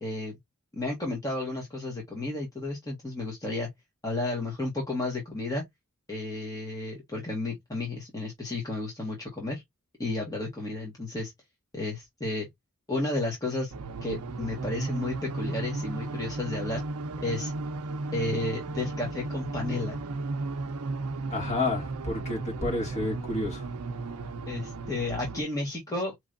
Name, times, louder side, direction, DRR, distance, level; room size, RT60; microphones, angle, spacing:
voice 1, 0.0-0.3 0.7-3.7 4.0-5.6 6.1-9.6 10.0-11.3 11.7-12.5 12.9-13.7 14.0-16.8 17.2-17.5 18.1-20.0 24.5-26.1, left 2 dB, 15° left, 1.4 m, -32 dB
sound 1, 13.7-25.4, right 3 dB, 85° right, 0.6 m, -35 dB
voice 2, 21.3-23.7, left 2 dB, 30° left, 2.3 m, -30 dB
5.3 x 3.2 x 2.5 m
head